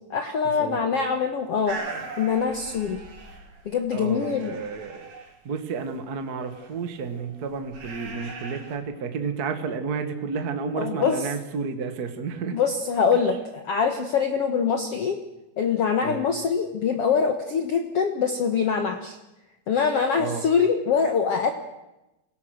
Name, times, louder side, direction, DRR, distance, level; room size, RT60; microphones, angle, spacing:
voice 1, 0.1-1.8 2.2-3.0 3.6-4.6 8.2-8.3 10.8-11.2 12.5-15.2 15.6-19.2 19.7-21.5, left 6 dB, 60° left, 6 dB, 1.6 m, -24 dB
sound 1, 1.7-3.8 4.1-5.4 6.5-8.8, right 3 dB, 70° right, 5.4 m, -39 dB
voice 2, 3.9-5.1 5.4-12.6 16.0-16.2 20.2-20.5, right 5 dB, 50° right, 7 dB, 1.1 m, -31 dB
28.0 x 17.5 x 6.5 m, 0.96 s
omnidirectional pair, 4.4 m